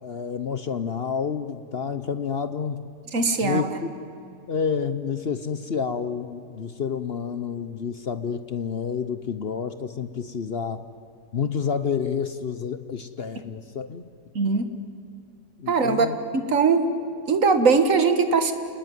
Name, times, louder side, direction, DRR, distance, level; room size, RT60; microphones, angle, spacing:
voice 1, 0.0-2.9 3.4-3.7 4.5-10.8 11.3-14.1 15.6-16.2, left 6 dB, 50° left, 12 dB, 0.8 m, -29 dB
voice 2, 3.1-3.8 14.4-14.7 15.7-16.1 16.3-16.9 17.3-18.5, right 4 dB, 50° right, 9 dB, 1.9 m, -20 dB
28.5 x 19.5 x 9.4 m, 2.6 s
omnidirectional pair, 1.8 m